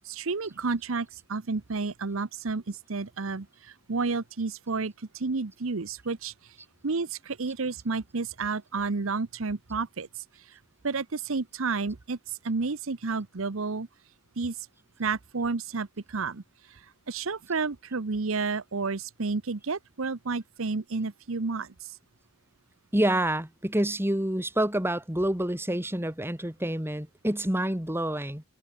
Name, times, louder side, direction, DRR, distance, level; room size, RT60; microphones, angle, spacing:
voice 1, 0.0-6.3 6.8-10.6 10.8-13.9 14.4-14.6 15.0-16.4 16.7-22.0, right 4 dB, 75° right, 0.9 m, -31 dB
voice 2, 22.9-28.4, right 1 dB, 10° right, 1.9 m, -27 dB
head